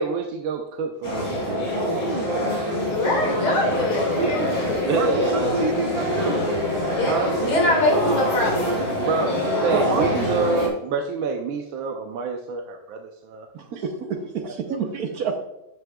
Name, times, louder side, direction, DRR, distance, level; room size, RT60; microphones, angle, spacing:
voice 1, 0.0-2.8 4.7-5.6 5.9-6.2 7.0-7.3 8.9-13.5, right 4 dB, 80° right, 3 dB, 1.5 m, -28 dB
sound 1, 1.0-10.7, left 1 dB, 70° left, 3.7 m, -25 dB
voice 2, 2.9-4.8 6.9-8.8, left 1 dB, 85° left, -1 dB, 3.1 m, -23 dB
voice 3, 4.9-6.4 9.3-10.5 13.5-15.4, right 4 dB, 60° right, 5 dB, 1.1 m, -28 dB
12.5 x 6.2 x 2.3 m, 0.94 s
omnidirectional pair, 2.2 m